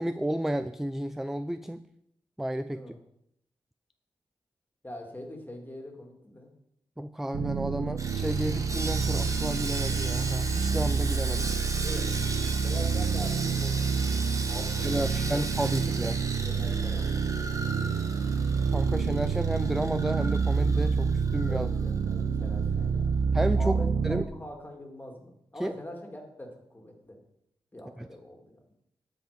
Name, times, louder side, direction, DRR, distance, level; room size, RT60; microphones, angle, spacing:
voice 1, 0.0-1.8 2.4-2.8 7.0-11.5 14.8-16.2 18.7-21.7 23.3-23.8 24.0-24.3 25.6-25.7 28.0-28.1, right 1 dB, 5° right, 12 dB, 0.3 m, -32 dB
voice 2, 4.8-6.5 11.8-12.1 12.6-14.1 14.5-14.9 15.1-15.4 16.4-17.6 21.5-23.2 23.6-27.2 27.7-28.6, left 1 dB, 20° left, 1 dB, 2.3 m, -43 dB
sound 1, 7.3-24.2, right 5 dB, 85° right, 0.6 m, -28 dB
Sawing, 8.0-22.2 22.5-22.7 23.1-23.2, right 2 dB, 30° right, 1.2 m, -37 dB
10.0 x 5.7 x 5.1 m, 0.77 s
cardioid pair, 75°, 10 cm